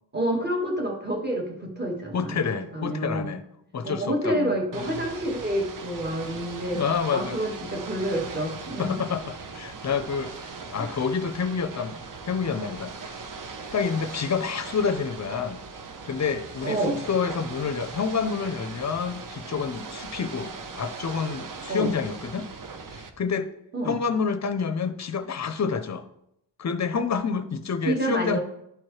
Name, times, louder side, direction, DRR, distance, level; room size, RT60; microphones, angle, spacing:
voice 1, 0.1-2.4 2.7-3.3 3.8-6.8 7.1-9.0 10.8-10.9 16.6-17.0 21.7-21.9 23.7-23.9 27.9-28.4, right 1 dB, 20° right, -1 dB, 1.7 m, -28 dB
voice 2, 2.1-3.4 3.7-5.0 6.7-7.4 8.8-12.0 12.3-13.3 13.7-15.6 16.1-20.5 20.7-22.5 22.9-23.5 23.8-26.1 26.6-28.4, left 6 dB, 40° left, 10 dB, 0.6 m, -28 dB
Ocean / Boat Water vehicle, 4.7-23.1, right 4 dB, 45° right, 0.7 m, -39 dB
12.0 x 4.5 x 3.2 m, 0.80 s
wide cardioid pair, 140°, 44 cm